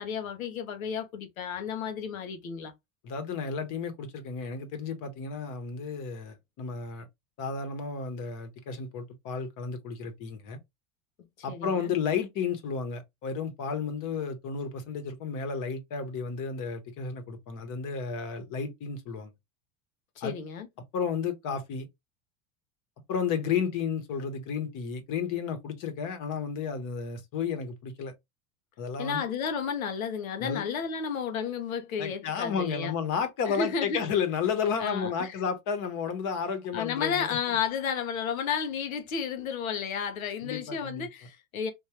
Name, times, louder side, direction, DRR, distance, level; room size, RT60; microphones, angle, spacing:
voice 1, 0.0-2.7 11.5-11.9 20.2-20.7 29.0-32.9 33.5-34.0 34.8-35.3 36.7-41.7, left 6 dB, 85° left, 1.0 m, -32 dB
voice 2, 3.0-7.1 7.4-10.6 11.4-19.3 20.2-20.3 20.9-21.9 23.1-28.1 28.8-29.2 30.4-30.6 32.0-37.3 40.4-41.1, left 6 dB, 50° left, 1.2 m, -32 dB
3.6 x 2.6 x 2.9 m
hypercardioid pair, 90°, 40 cm